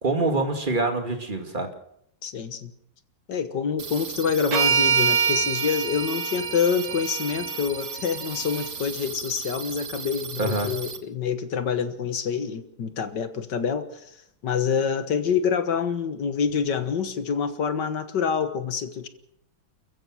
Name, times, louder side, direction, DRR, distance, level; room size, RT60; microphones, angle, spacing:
voice 1, 0.0-1.7 10.4-10.7, right 2 dB, 25° right, 5 dB, 2.3 m, -25 dB
voice 2, 2.2-2.7 3.3-13.9 14.4-19.1, left 6 dB, 60° left, 10 dB, 1.9 m, -26 dB
sound 1, 3.8-11.0, right 6 dB, 40° right, 1.3 m, -37 dB
sound 2, 4.5-8.7, right 6 dB, 85° right, 2.8 m, -26 dB
29.5 x 15.0 x 6.2 m, 0.74 s
omnidirectional pair, 2.2 m